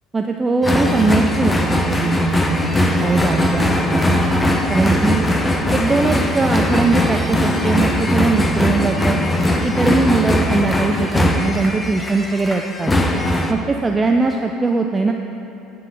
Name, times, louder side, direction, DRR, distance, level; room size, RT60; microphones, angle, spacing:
voice 1, 0.1-2.6 3.0-4.1 4.7-5.3 5.7-9.2 9.6-12.9 13.5-15.1, right 3 dB, 20° right, 3 dB, 0.4 m, -20 dB
sound 1, 0.6-13.5, left 1 dB, 15° left, 0.7 m, -19 dB
9.1 x 3.7 x 6.2 m, 2.8 s
hypercardioid pair, 65°, 0 cm